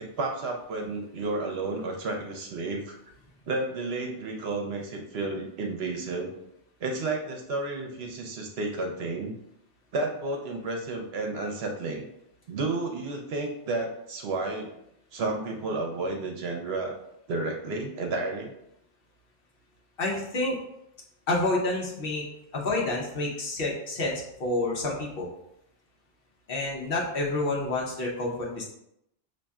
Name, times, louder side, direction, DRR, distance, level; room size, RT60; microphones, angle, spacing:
voice 1, 0.0-3.0 3.5-6.3 6.8-9.4 9.9-12.1 12.5-14.7 15.1-17.0 17.3-18.5, right 2 dB, 65° right, 2 dB, 0.8 m, -31 dB
voice 2, 20.0-20.6 21.3-22.3 22.5-25.3 26.5-28.7, left 2 dB, 55° left, -2 dB, 0.9 m, -29 dB
5.2 x 2.6 x 2.3 m, 0.79 s
omnidirectional pair, 1.2 m